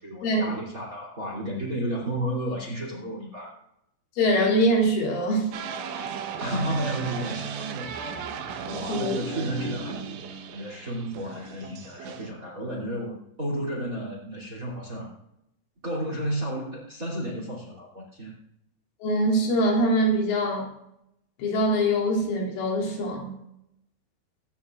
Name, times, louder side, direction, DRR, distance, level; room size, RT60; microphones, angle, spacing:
voice 1, 0.0-3.5 6.4-8.3 8.7-15.1 15.8-18.3, right 1 dB, 20° right, -1 dB, 2.5 m, -32 dB
voice 2, 4.2-5.5 8.7-9.2 19.0-20.7 21.4-23.4, equal, 90° left, -2 dB, 5.5 m, -23 dB
sound 1, 5.5-12.3, right 5 dB, 80° right, 3.6 m, -35 dB
24.0 x 10.5 x 2.5 m, 0.79 s
omnidirectional pair, 5.5 m